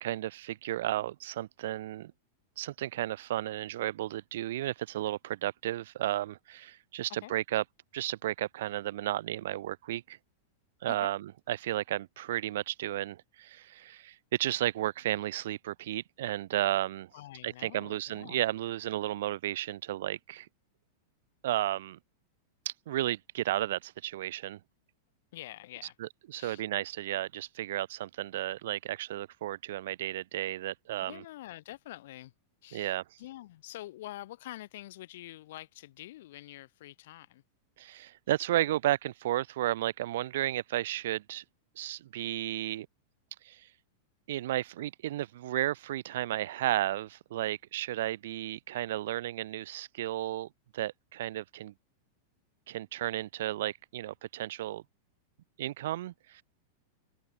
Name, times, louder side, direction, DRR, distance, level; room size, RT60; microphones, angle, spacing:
voice 1, 0.0-2.1 2.6-7.6 7.9-10.2 10.8-17.1 17.4-20.5 21.4-22.0 22.7-24.6 26.0-31.2 32.7-33.0 37.8-41.4 41.8-42.9 43.4-43.7 44.3-51.7 52.7-54.8 55.6-56.4, right 14 dB, 70° right, 0.3 m, -33 dB
voice 2, 17.1-18.4 25.3-26.0 26.3-26.6 31.0-32.3 32.6-37.4, left 15 dB, 70° left, 0.6 m, -46 dB
open air
supercardioid pair, 135°, 0 cm